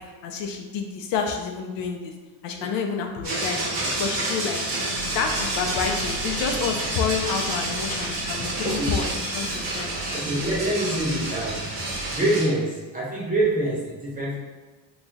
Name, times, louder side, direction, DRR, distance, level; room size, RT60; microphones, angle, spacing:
voice 1, 0.2-2.1 2.4-3.6 4.0-4.8 5.1-9.9, left 6 dB, 70° left, 3 dB, 0.7 m, -29 dB
sound 1, 3.2-12.5, right 2 dB, 55° right, 1.0 m, -29 dB
sound 2, 4.9-12.2, right 4 dB, 85° left, 1.1 m, -41 dB
voice 2, 8.6-8.9 10.1-11.6 12.1-14.4, right 1 dB, 20° right, -5 dB, 0.5 m, -25 dB
3.9 x 3.0 x 2.4 m, 1.3 s
cardioid pair, 155°, 45 cm